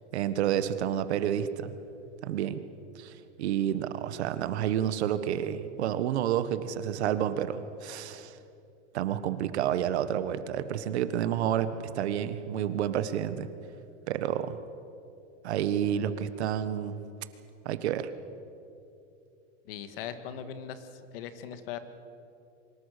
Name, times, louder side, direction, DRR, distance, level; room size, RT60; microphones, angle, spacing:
voice 1, 0.1-1.7 2.2-2.6 2.9-8.4 8.9-13.5 14.1-14.6 15.4-17.0 17.6-18.1, right 10 dB, 65° right, 12 dB, 1.5 m, -30 dB
voice 2, 19.7-20.9 21.1-21.8, left 9 dB, 50° left, 10 dB, 1.8 m, -39 dB
24.5 x 21.0 x 6.7 m, 2.7 s
supercardioid pair, 160°, 35 cm